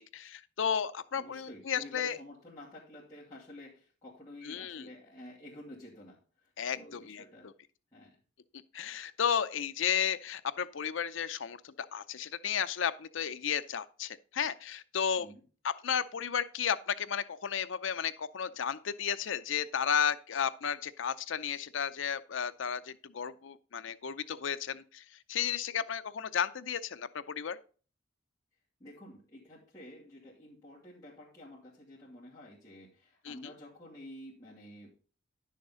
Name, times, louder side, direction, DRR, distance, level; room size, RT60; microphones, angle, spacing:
voice 1, 0.0-2.2 4.4-4.9 6.6-7.5 8.7-15.3 15.6-25.0 25.3-27.6 33.2-33.5, left 8 dB, 70° left, 0.5 m, -33 dB
voice 2, 1.1-7.5 7.9-8.2 15.2-15.4 28.8-34.9, left 1 dB, 20° left, 2.4 m, -50 dB
10.5 x 6.5 x 3.8 m
head